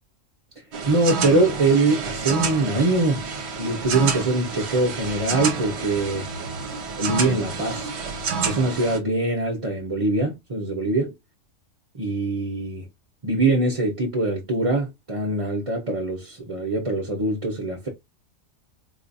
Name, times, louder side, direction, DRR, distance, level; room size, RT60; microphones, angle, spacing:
sound 1, 0.7-9.0, right 5 dB, 60° right, 1.0 m, -29 dB
voice 1, 0.9-3.3 3.6-6.3 7.0-7.9 8.4-11.1 11.9-12.8 13.2-17.9, right 2 dB, 30° right, 0.8 m, -23 dB
4.0 x 2.4 x 2.6 m
omnidirectional pair, 1.4 m